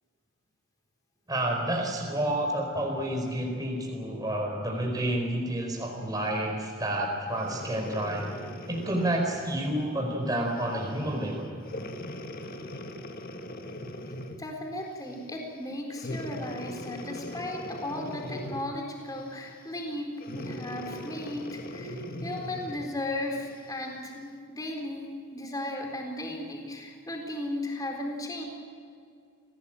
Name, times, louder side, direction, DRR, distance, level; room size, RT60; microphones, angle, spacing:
voice 1, 1.3-8.3 8.7-11.5, right 1 dB, 15° right, 1 dB, 4.6 m, -29 dB
Breathing, 7.3-10.0 10.6-10.8 11.6-14.5 16.0-18.8 20.2-22.9 23.6-23.7, left 1 dB, 40° left, 1.9 m, -40 dB
voice 2, 14.4-28.4, left 1 dB, 15° left, 2 dB, 4.0 m, -36 dB
27.5 x 19.0 x 9.0 m, 2.4 s
head